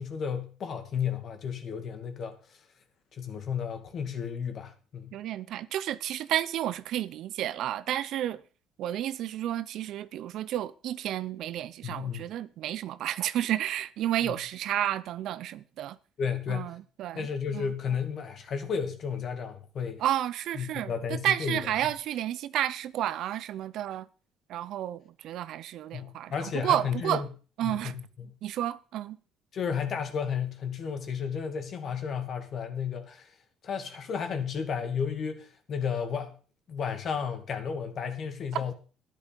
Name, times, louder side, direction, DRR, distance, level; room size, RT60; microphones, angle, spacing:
voice 1, 0.0-2.4 3.1-5.2 11.8-12.3 14.2-14.3 16.2-16.7 17.1-20.0 20.6-21.6 25.9-27.3 27.6-28.3 29.5-33.3 33.6-36.4 36.7-38.7, left 7 dB, 50° left, 2.4 m, -33 dB
voice 2, 5.1-8.4 8.8-16.0 16.5-17.3 17.5-17.7 20.0-24.1 24.5-27.2 27.6-28.0 28.4-29.2, right 12 dB, 65° right, 0.7 m, -31 dB
12.0 x 11.0 x 5.3 m
cardioid pair, 110°, 0 cm